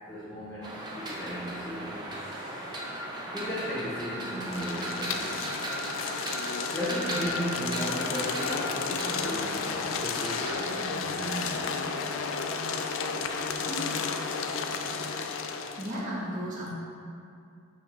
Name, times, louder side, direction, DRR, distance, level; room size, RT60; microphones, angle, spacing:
voice 1, 0.1-2.6 3.3-5.4 6.7-11.7, equal, 10° left, -10 dB, 0.8 m, -36 dB
sound 1, 0.6-10.5, right 1 dB, 20° right, 0.6 m, -37 dB
sound 2, 4.4-16.0, left 5 dB, 85° left, 0.4 m, -32 dB
voice 2, 15.8-16.8, equal, 40° right, -7 dB, 1.2 m, -34 dB
6.9 x 5.9 x 2.5 m, 2.4 s
head